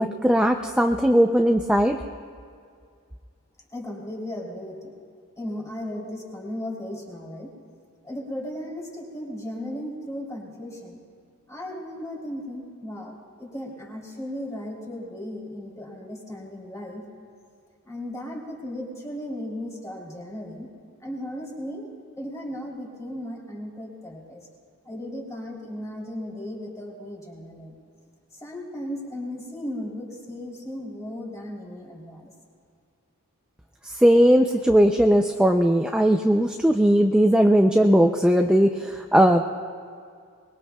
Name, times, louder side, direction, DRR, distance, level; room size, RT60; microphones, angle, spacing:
voice 1, 0.0-2.0 33.8-39.4, equal, 5° right, 4 dB, 0.4 m, -19 dB
voice 2, 3.7-4.9 5.4-7.5 8.0-11.0 11.5-17.0 17.8-20.7 21.0-21.9 22.2-24.5 24.8-27.8 28.3-32.3, left 1 dB, 15° left, -2 dB, 3.1 m, -36 dB
24.0 x 21.0 x 2.3 m, 2.2 s
head